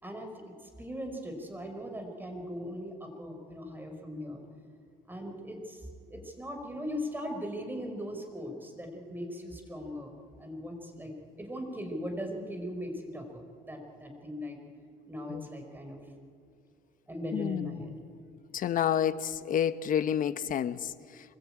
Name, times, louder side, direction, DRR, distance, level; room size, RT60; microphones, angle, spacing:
voice 1, 0.6-4.4 5.1-10.1 10.4-14.6 15.1-16.0 17.1-17.9, equal, 10° right, 5.0 m, -39 dB
voice 2, 17.3-17.8 18.5-20.9, left 9 dB, 55° left, 1.0 m, -29 dB
25.0 x 21.0 x 8.9 m
cardioid pair, 110°, 17 cm